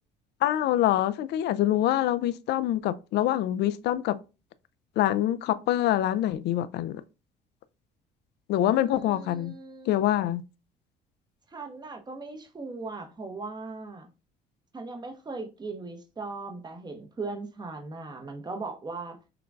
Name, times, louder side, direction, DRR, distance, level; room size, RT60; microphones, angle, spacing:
voice 1, 0.4-4.2 5.0-7.0 8.5-9.5 9.9-10.4, left 13 dB, 60° left, 0.4 m, -25 dB
voice 2, 8.8-10.0 11.5-14.1 14.7-19.2, right 3 dB, 20° right, 0.9 m, -38 dB
5.7 x 2.2 x 2.5 m
supercardioid pair, 70°, 19 cm